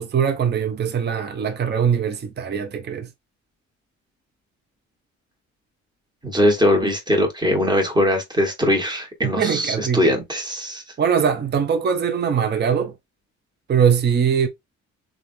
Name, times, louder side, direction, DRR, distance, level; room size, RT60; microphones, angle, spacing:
voice 1, 0.0-3.1 9.2-10.1 11.0-12.9 13.7-14.5, right 7 dB, 35° right, 0.6 m, -21 dB
voice 2, 6.2-10.8, left 1 dB, 15° right, 1.4 m, -21 dB
3.3 x 2.4 x 2.6 m
cardioid pair, 90°, 30 cm